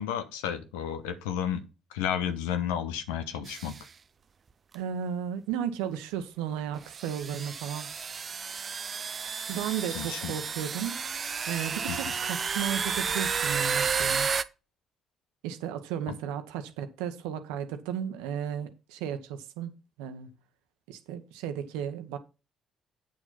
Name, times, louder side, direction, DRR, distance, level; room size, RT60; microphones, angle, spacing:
voice 1, 0.0-1.6 1.9-3.7 9.9-10.3 11.9-12.0 16.1-16.2, left 9 dB, 80° left, 1.0 m, -32 dB
sound 1, 3.5-3.8 4.7-4.8 5.9-6.0 6.9-14.4, right 6 dB, 45° right, 0.6 m, -31 dB
voice 2, 4.7-7.9 9.5-11.0 11.5-14.3 15.4-20.3 20.9-22.2, right 9 dB, 80° right, 1.1 m, -34 dB
8.6 x 6.6 x 4.0 m
hypercardioid pair, 45°, 0 cm